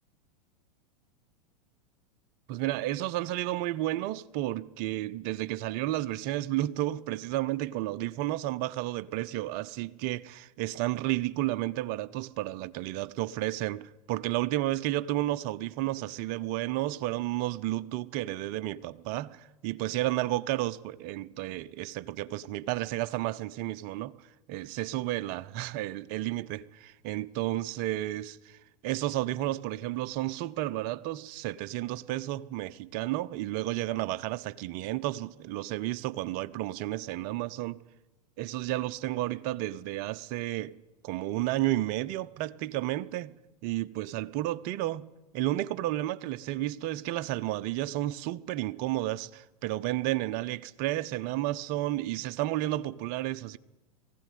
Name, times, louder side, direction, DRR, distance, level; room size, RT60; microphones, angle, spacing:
voice 1, 2.5-28.6 28.8-37.8 38.4-40.7 41.0-43.3 43.6-45.1 45.3-53.6, right 15 dB, 45° right, 0.8 m, -32 dB
19.5 x 16.0 x 9.3 m
hypercardioid pair, 100°, 20 cm